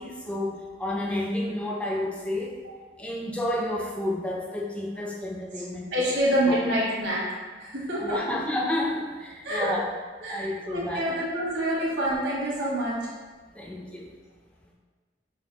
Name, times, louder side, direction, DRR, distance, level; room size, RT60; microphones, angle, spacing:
voice 1, 0.0-2.5 3.0-5.9 6.5-6.6 8.0-9.9 10.3-11.1 12.6-12.7 13.6-14.1, left 1 dB, 5° left, -2 dB, 0.3 m, -30 dB
voice 2, 5.9-7.2 7.6-8.2 9.4-9.7 10.2-13.0, equal, 85° right, -6 dB, 1.2 m, -27 dB
5.0 x 2.3 x 2.7 m, 1.4 s
head